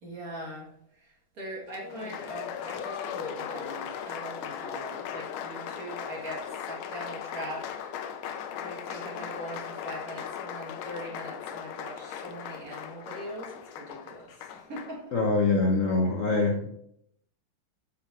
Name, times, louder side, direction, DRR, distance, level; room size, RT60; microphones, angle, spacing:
voice 1, 0.0-8.2 8.6-15.2, right 1 dB, 45° right, -3 dB, 2.1 m, -41 dB
Applause, 1.7-15.0, left 8 dB, 85° left, 1.5 m, -38 dB
voice 2, 15.1-16.7, left 3 dB, 55° left, 0 dB, 0.9 m, -24 dB
7.2 x 4.6 x 3.9 m, 0.72 s
omnidirectional pair, 2.3 m